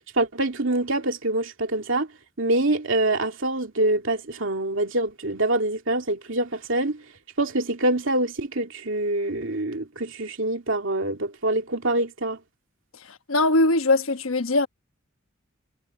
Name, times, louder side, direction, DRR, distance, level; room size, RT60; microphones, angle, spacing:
voice 1, 0.2-2.1 2.4-7.0 7.4-12.4, right 2 dB, 70° right, 2.8 m, -25 dB
voice 2, 13.1-14.7, left 2 dB, 85° left, 1.2 m, -21 dB
head